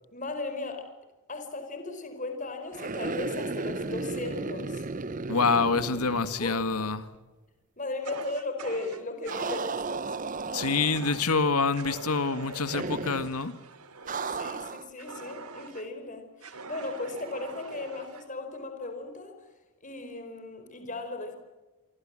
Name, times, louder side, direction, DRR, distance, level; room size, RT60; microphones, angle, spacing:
voice 1, 0.1-0.9 1.3-4.9 6.4-6.6 7.8-10.1 14.3-19.3 19.8-21.4, left 2 dB, 35° left, 7 dB, 4.7 m, -36 dB
sound 1, 2.7-6.9 7.1-7.2 9.3-11.3 12.7-13.4 14.1-14.9, right 3 dB, 35° right, 0.8 m, -34 dB
voice 2, 5.3-7.1 10.5-13.5, left 4 dB, 85° left, 11 dB, 1.8 m, -26 dB
Fire, 8.0-9.7 10.9-11.4 11.7-15.9 16.4-18.3, right 3 dB, 85° right, 2.7 m, -43 dB
28.0 x 24.5 x 7.6 m, 1.2 s
head